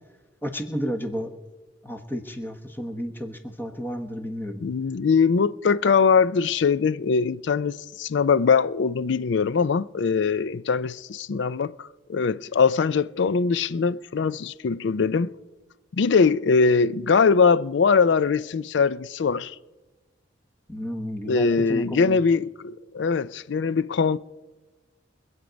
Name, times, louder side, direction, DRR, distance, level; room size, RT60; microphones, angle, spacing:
voice 1, 0.4-1.3 1.8-4.6 20.7-22.2, equal, 10° left, 1.2 m, -32 dB
voice 2, 4.6-15.3 16.0-19.5 21.3-24.2, left 5 dB, 60° left, 0.4 m, -22 dB
24.5 x 8.1 x 5.1 m
head